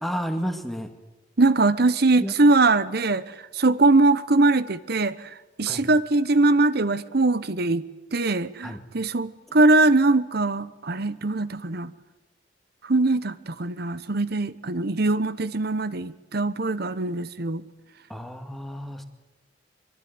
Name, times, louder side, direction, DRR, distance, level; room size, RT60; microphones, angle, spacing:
voice 1, 0.0-0.9 2.2-2.3 5.6-5.8 8.2-8.3 8.6-8.8 18.1-19.0, equal, ahead, 6 dB, 2.2 m, -31 dB
voice 2, 1.4-5.2 5.6-7.8 8.1-11.9 12.8-17.6, right 2 dB, 55° right, 16 dB, 1.0 m, -21 dB
24.5 x 23.5 x 9.6 m, 1.0 s
head